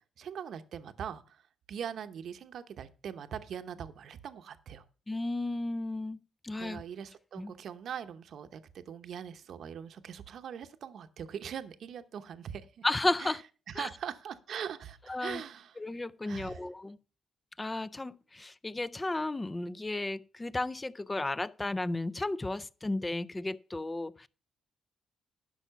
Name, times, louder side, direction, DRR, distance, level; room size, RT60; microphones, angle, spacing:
voice 1, 0.2-4.8 6.6-12.8 13.2-13.4 13.7-15.8 16.3-16.6, right 8 dB, 65° right, 0.8 m, -42 dB
voice 2, 5.1-6.8 7.4-7.5 12.8-13.4 13.8-13.9 15.1-15.4 15.8-17.0 17.6-24.3, left 2 dB, 15° left, 0.4 m, -34 dB
11.0 x 5.9 x 5.8 m
cardioid pair, 90°, 0 cm